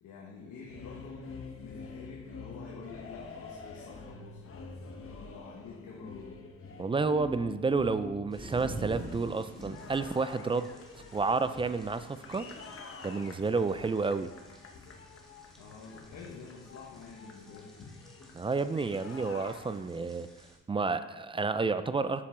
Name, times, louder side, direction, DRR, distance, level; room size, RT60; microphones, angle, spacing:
voice 1, 0.0-4.4 5.0-6.4 15.6-17.7, left 4 dB, 75° left, -3 dB, 1.4 m, -48 dB
sound 1, 0.6-20.2, left 4 dB, 45° left, 1.0 m, -47 dB
voice 2, 6.8-12.5 13.0-14.3 18.3-20.3 20.7-22.2, right 4 dB, 20° right, 12 dB, 0.3 m, -30 dB
sound 2, 8.3-20.6, equal, ahead, 1.7 m, -49 dB
7.2 x 6.6 x 3.8 m, 1.2 s
cardioid pair, 90°, 30 cm